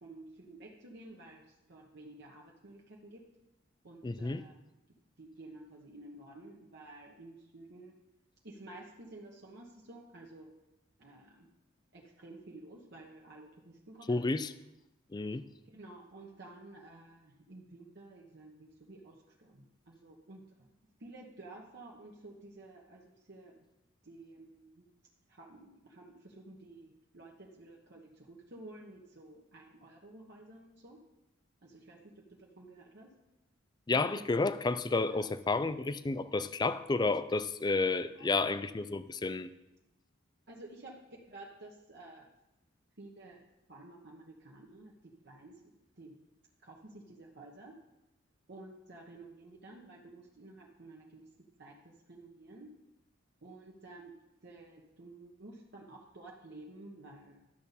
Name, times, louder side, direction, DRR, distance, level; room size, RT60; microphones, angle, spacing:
voice 1, 0.0-3.2 3.8-4.6 5.2-7.9 8.4-10.5 11.0-11.5 11.9-14.3 15.6-20.4 21.0-23.6 24.0-24.9 25.3-31.0 31.6-33.1 33.9-34.2 35.0-35.3 38.2-38.5 40.5-42.3 43.0-43.4 43.7-44.9 45.2-45.6 46.0-46.1 46.6-47.8 48.5-51.3 51.6-52.7 53.4-54.1 54.4-57.5, right 2 dB, 55° right, -1 dB, 1.2 m, -52 dB
voice 2, 4.0-4.4 14.1-14.5 15.1-15.4 33.9-39.5, left 3 dB, 20° left, 14 dB, 0.4 m, -31 dB
12.5 x 6.8 x 4.1 m, 0.93 s
head